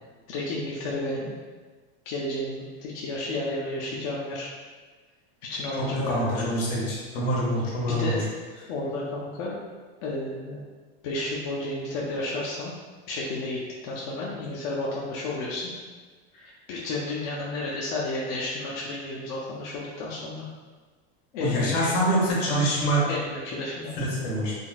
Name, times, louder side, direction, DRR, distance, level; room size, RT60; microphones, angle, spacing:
voice 1, 0.3-1.3 2.1-4.5 5.5-6.5 7.9-8.2 8.7-9.6 10.0-10.6 11.0-12.7 13.1-15.7 16.3-20.4 21.3-21.9 23.1-23.9, left 2 dB, 40° left, -5 dB, 0.4 m, -32 dB
voice 2, 6.1-8.2 21.4-23.0 24.0-24.5, equal, 70° left, -5 dB, 1.2 m, -25 dB
3.9 x 2.1 x 2.4 m, 1.4 s
supercardioid pair, 165°, 31 cm